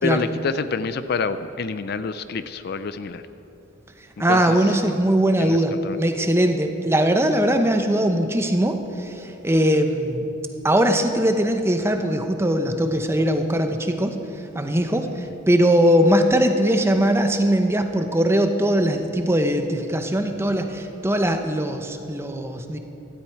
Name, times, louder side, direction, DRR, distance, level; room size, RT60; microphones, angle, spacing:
voice 1, 0.0-3.2 4.3-4.8 5.4-5.6 5.8-6.0, left 4 dB, 50° left, 12 dB, 0.4 m, -27 dB
voice 2, 4.2-10.2 10.6-14.2 14.5-22.8, right 1 dB, 15° right, 6 dB, 0.7 m, -20 dB
15.5 x 13.0 x 4.6 m, 3.0 s
head